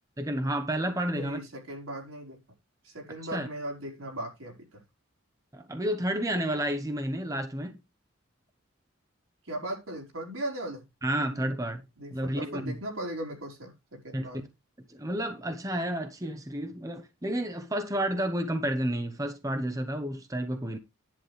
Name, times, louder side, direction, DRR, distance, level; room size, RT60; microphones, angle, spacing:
voice 1, 0.2-1.4 3.3-3.5 5.5-7.8 11.0-11.8 12.1-12.7 14.1-14.3 14.9-20.8, right 1 dB, 15° right, 0.9 m, -31 dB
voice 2, 1.1-2.4 2.8-4.8 9.4-10.8 11.2-11.5 12.0-14.5, right 1 dB, 85° right, 4.9 m, -38 dB
10.5 x 9.2 x 3.3 m
head